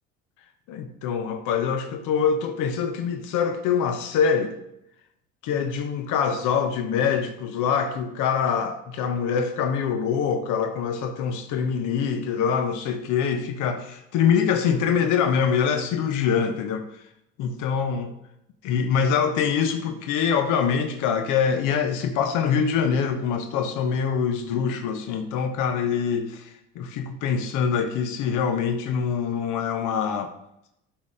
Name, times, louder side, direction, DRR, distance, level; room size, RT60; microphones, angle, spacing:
voice 1, 0.7-4.5 5.4-16.9 17.4-18.1 18.6-30.3, left 7 dB, 70° left, 8 dB, 0.9 m, -24 dB
8.2 x 4.1 x 5.0 m, 0.80 s
supercardioid pair, 85°, 31 cm